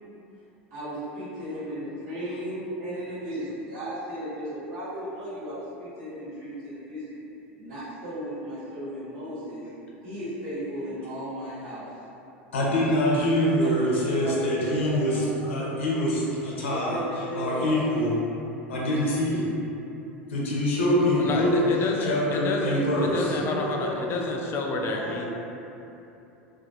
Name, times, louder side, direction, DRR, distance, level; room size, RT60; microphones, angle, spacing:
voice 1, 0.7-7.2 7.6-9.6 10.0-11.8 13.5-15.4 16.7-18.1 20.7-21.6 22.5-24.5 24.9-25.3, equal, 55° right, -14 dB, 1.3 m, -35 dB
voice 2, 12.5-17.0 17.3-18.2 18.7-19.5 20.3-21.5 22.0-23.4, left 1 dB, 80° left, -5 dB, 0.6 m, -25 dB
voice 3, 21.2-25.3, left 2 dB, 40° left, 1 dB, 0.3 m, -29 dB
2.4 x 2.1 x 2.8 m, 2.9 s
hypercardioid pair, 85°, 7 cm